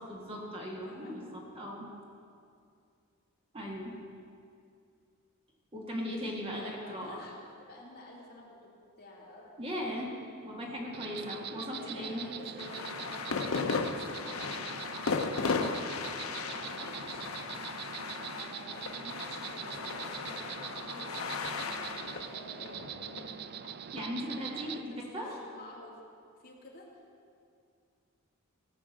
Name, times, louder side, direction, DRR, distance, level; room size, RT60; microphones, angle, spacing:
voice 1, 0.0-1.9 3.5-3.9 5.7-7.2 9.6-10.1 10.4-12.2 23.9-25.4, equal, 25° right, -2 dB, 1.8 m, -38 dB
voice 2, 0.9-1.2 6.0-8.7 9.0-9.5 11.7-13.3 13.9-14.0 16.5-17.3 18.2-22.0 22.2-23.6 24.3-26.0 26.4-26.9, left 1 dB, 45° left, -4 dB, 2.7 m, -50 dB
Insect, 10.9-24.8, right 8 dB, 50° right, 0.4 m, -43 dB
sound 1, 12.6-24.1, left 4 dB, 75° left, 0.8 m, -36 dB
17.0 x 6.3 x 7.6 m, 2.4 s
head